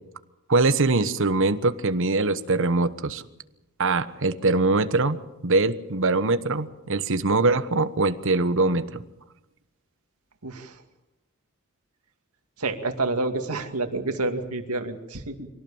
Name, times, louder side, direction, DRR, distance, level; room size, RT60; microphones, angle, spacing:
voice 1, 0.5-3.2 3.8-9.0, right 3 dB, 60° right, 11 dB, 1.2 m, -23 dB
voice 2, 10.4-10.8 12.6-15.5, right 2 dB, 85° right, 6 dB, 2.3 m, -29 dB
24.0 x 17.5 x 7.2 m, 0.96 s
head